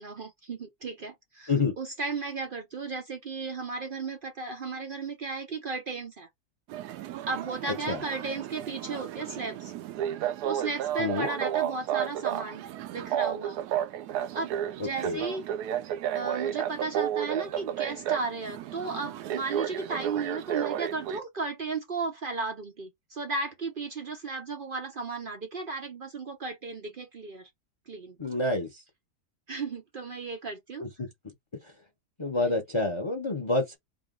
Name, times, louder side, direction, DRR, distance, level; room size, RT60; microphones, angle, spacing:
voice 1, 0.0-6.3 7.2-9.7 10.4-12.6 12.9-13.6 14.3-14.5 14.8-15.5 16.1-27.5 27.9-28.2 29.5-30.8 32.5-32.6, right 4 dB, 55° right, 0.6 m, -35 dB
sound 1, 6.7-21.2, right 10 dB, 80° right, 1.1 m, -32 dB
voice 2, 28.2-28.7 30.8-31.1 32.2-33.8, left 3 dB, 25° left, 0.6 m, -28 dB
3.7 x 2.5 x 3.7 m
omnidirectional pair, 1.7 m